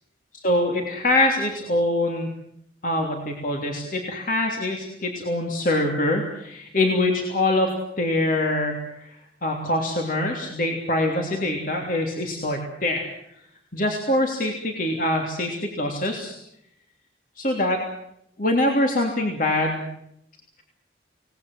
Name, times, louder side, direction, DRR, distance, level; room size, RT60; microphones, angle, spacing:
voice 1, 0.4-2.3 2.8-9.1 9.4-13.1 13.7-16.3 17.4-17.8 18.4-19.9, left 1 dB, 45° left, 1 dB, 3.2 m, -24 dB
27.5 x 19.0 x 7.9 m, 0.75 s
head